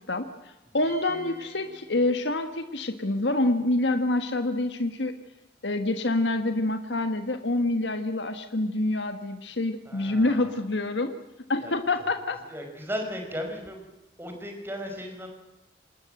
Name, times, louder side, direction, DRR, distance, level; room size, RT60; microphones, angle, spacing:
voice 1, 0.7-5.1 5.6-11.1 11.5-12.4, left 2 dB, 70° left, 7 dB, 1.6 m, -26 dB
sound 1, 0.8-2.7, right 1 dB, 70° right, 5.1 m, -47 dB
voice 2, 9.8-10.6 10.9-11.1 11.6-11.7 12.4-13.9 14.2-15.3, equal, 15° right, 3 dB, 5.3 m, -36 dB
27.0 x 20.0 x 7.9 m, 0.99 s
head